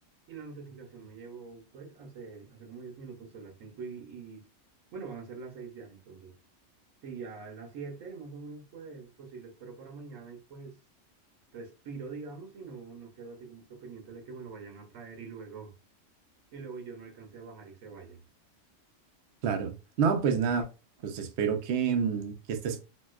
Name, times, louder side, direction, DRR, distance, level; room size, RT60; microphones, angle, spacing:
voice 1, 0.3-4.5 4.9-6.3 7.0-10.8 11.5-15.7 16.5-18.2, right 5 dB, 80° right, 1.1 m, -44 dB
voice 2, 19.4-20.7 21.0-22.8, right 6 dB, 65° right, 0.7 m, -28 dB
4.0 x 2.2 x 2.3 m
omnidirectional pair, 1.3 m